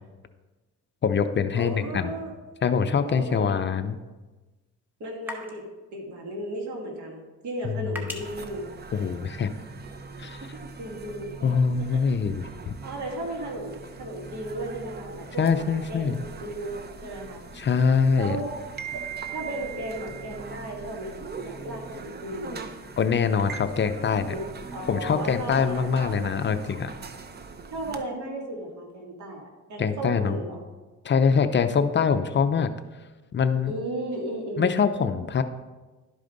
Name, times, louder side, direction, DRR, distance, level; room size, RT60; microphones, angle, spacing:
voice 1, 1.0-2.1 2.6-4.0 7.6-7.9 8.9-9.5 10.2-10.5 11.4-12.7 15.4-16.2 17.6-18.4 23.0-24.3 24.9-26.9 29.8-30.4 31.0-32.7 33.3-33.7 34.6-35.4, left 6 dB, 40° left, 10 dB, 0.5 m, -24 dB
voice 2, 1.5-2.3 3.1-3.6 5.0-5.6 5.9-8.7 10.8-12.2 12.8-15.5 15.9-17.4 18.2-18.6 18.9-22.7 24.3-24.4 24.7-26.1 27.7-30.6 33.7-34.6, right 1 dB, 70° right, -1 dB, 2.2 m, -35 dB
sound 1, 2.9-9.7, left 2 dB, 5° right, 1.4 m, -46 dB
sound 2, 8.2-28.0, right 5 dB, 35° right, 0.7 m, -41 dB
11.5 x 4.9 x 3.9 m, 1.2 s
cardioid pair, 90°, 30 cm